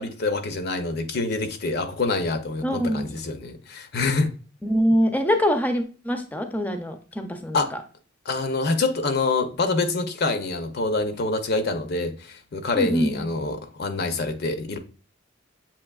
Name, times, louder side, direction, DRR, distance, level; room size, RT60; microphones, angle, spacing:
voice 1, 0.0-4.3 7.5-7.7 8.3-14.8, left 3 dB, 55° left, 0.6 m, -26 dB
voice 2, 2.6-3.1 4.6-7.8 12.7-13.2, equal, 10° left, 0.5 m, -24 dB
7.0 x 2.9 x 2.3 m
head